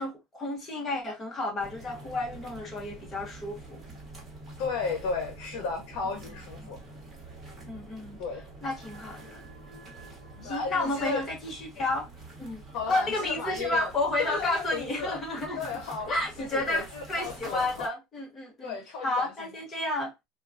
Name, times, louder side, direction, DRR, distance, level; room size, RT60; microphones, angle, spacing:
voice 1, 0.0-3.8 7.6-8.2 8.6-9.4 10.4-12.1 12.4-12.6 12.9-15.6 16.1-18.7 19.0-20.1, left 2 dB, 20° left, 1.0 m, -31 dB
sound 1, 1.6-17.9, right 2 dB, 10° right, 1.3 m, -47 dB
voice 2, 4.6-6.8 8.2-8.5 10.4-11.3 12.7-13.9 14.2-15.2 15.6-17.9 18.6-19.3, left 4 dB, 75° left, 0.8 m, -34 dB
3.7 x 2.3 x 2.5 m
cardioid pair, 160°, 0 cm